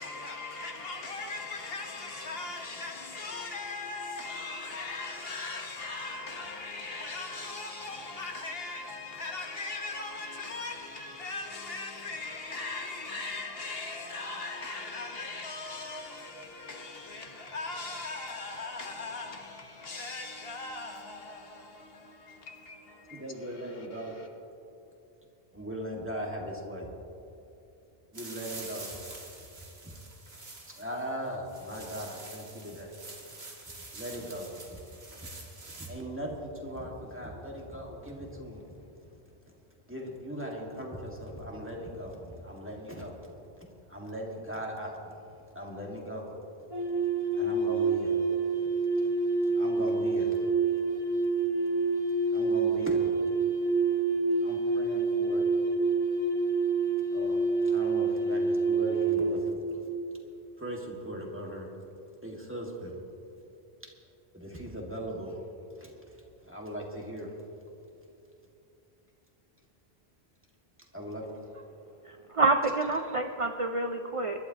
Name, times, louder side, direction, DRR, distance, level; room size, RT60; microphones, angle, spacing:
voice 1, 0.0-24.3, left 3 dB, 70° left, 1.5 m, -39 dB
voice 2, 23.1-24.2 25.5-26.9 28.1-28.9 29.8-29.9 30.7-32.9 33.7-34.8 35.2-35.3 35.7-39.1 39.9-45.2 45.6-46.3 47.0-48.2 48.6-48.7 49.0-49.2 49.4-51.2 51.8-51.9 52.3-53.1 54.4-55.5 57.1-59.8 60.6-61.7 62.2-62.9 64.3-65.4 65.8-67.4 70.9-71.5, equal, 10° right, 1.8 m, -39 dB
sound 1, 28.1-35.9, right 2 dB, 75° right, 2.0 m, -46 dB
sound 2, 46.7-59.4, right 4 dB, 35° left, 2.7 m, -27 dB
voice 3, 72.0-74.4, right 3 dB, 40° right, 0.5 m, -28 dB
24.5 x 12.0 x 2.9 m
omnidirectional pair, 1.0 m